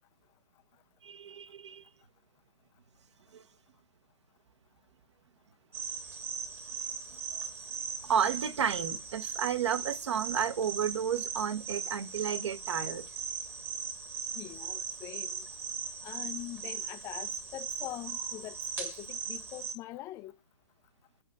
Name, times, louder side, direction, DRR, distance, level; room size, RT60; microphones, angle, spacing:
voice 1, 1.0-1.8 3.3-3.4 8.0-13.0, right 8 dB, 55° right, 1.2 m, -32 dB
sound 1, 5.7-19.7, right 6 dB, 10° right, 1.2 m, -39 dB
voice 2, 14.4-15.5 16.0-20.3, left 15 dB, 15° left, 0.5 m, -43 dB
8.5 x 5.2 x 7.4 m
figure-of-eight pair, 125°, 18 cm